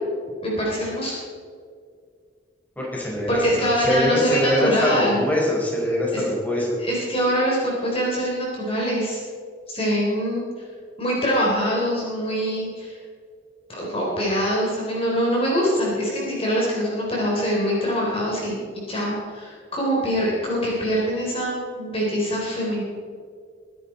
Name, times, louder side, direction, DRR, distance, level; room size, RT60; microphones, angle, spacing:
voice 1, 0.4-1.1 3.3-5.2 6.1-6.2 6.8-9.2 9.7-10.4 11.0-13.0 13.8-18.6 18.9-22.8, equal, 30° left, -4 dB, 3.8 m, -24 dB
voice 2, 2.8-6.8, equal, 10° left, -4 dB, 4.6 m, -23 dB
22.5 x 11.0 x 4.3 m, 2.1 s
head